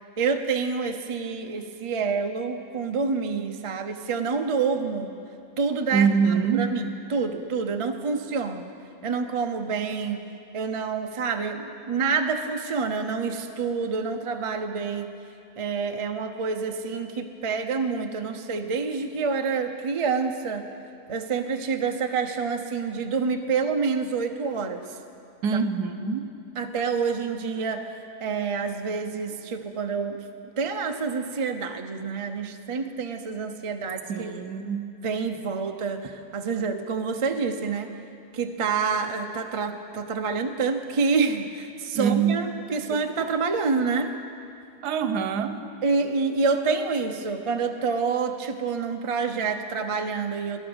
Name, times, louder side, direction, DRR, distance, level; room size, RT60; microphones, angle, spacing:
voice 1, 0.2-5.2 5.6-6.1 6.5-8.7 9.0-15.1 15.6-20.7 21.1-24.8 26.6-30.2 30.6-34.3 35.0-37.9 38.3-42.5 42.7-44.1 45.8-50.6, right 5 dB, 45° right, 5 dB, 0.4 m, -27 dB
voice 2, 5.9-6.7 25.4-26.3 34.1-34.9 41.9-42.4 42.7-42.8 44.8-45.7, right 6 dB, 80° right, 10 dB, 1.3 m, -24 dB
17.5 x 11.0 x 6.3 m, 2.5 s
omnidirectional pair, 1.8 m